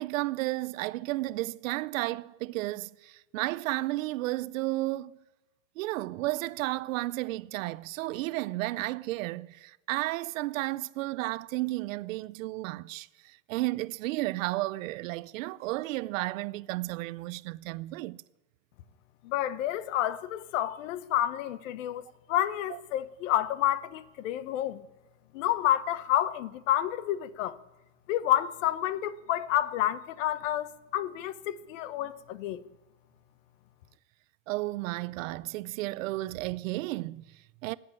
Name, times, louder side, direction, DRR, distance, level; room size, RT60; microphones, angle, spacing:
voice 1, 0.0-5.2 5.8-18.2 22.7-22.8 34.5-37.8, right 19 dB, 80° right, 0.6 m, -33 dB
voice 2, 19.2-22.0 22.3-24.8 25.3-27.6 28.1-32.6, left 12 dB, 75° left, 1.0 m, -29 dB
16.0 x 9.6 x 9.1 m
supercardioid pair, 175°, 38 cm